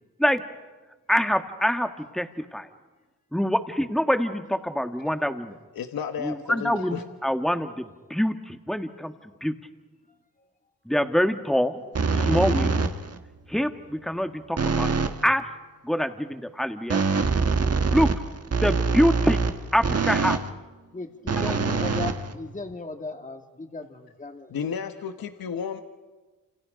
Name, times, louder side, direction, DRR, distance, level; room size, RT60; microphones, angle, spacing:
voice 1, 1.1-2.7 3.3-5.6 6.2-9.5 10.9-11.8 12.1-12.7 13.5-14.9 15.2-15.4 15.8-17.0 17.9-18.1 18.5-19.4 19.7-20.4, equal, ahead, 7 dB, 1.7 m, -25 dB
voice 2, 5.7-7.0 24.5-25.8, left 7 dB, 80° left, 7 dB, 1.3 m, -32 dB
sound 1, 11.9-13.2 14.6-15.2 16.9-20.5 21.3-22.7, right 4 dB, 45° right, 1.5 m, -24 dB
voice 3, 20.9-24.5, left 3 dB, 20° left, 5 dB, 2.1 m, -37 dB
29.0 x 28.0 x 5.2 m, 1.2 s
cardioid pair, 80°, 35 cm